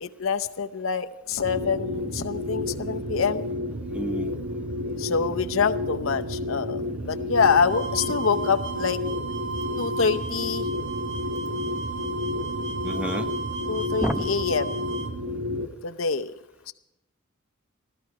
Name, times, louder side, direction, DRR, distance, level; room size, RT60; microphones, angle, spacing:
voice 1, 0.0-3.5 5.0-9.0 9.8-10.7 13.7-14.8 15.8-16.3 16.7-16.8, left 5 dB, 75° left, 8 dB, 0.7 m, -26 dB
sound 1, 1.4-15.7, left 1 dB, 80° right, 1.6 m, -31 dB
voice 2, 3.9-4.3 12.8-13.3 14.0-14.3, right 1 dB, 5° right, 7 dB, 0.8 m, -29 dB
sound 2, 7.4-15.1, right 4 dB, 65° right, 1.4 m, -35 dB
14.5 x 13.5 x 4.8 m, 0.91 s
head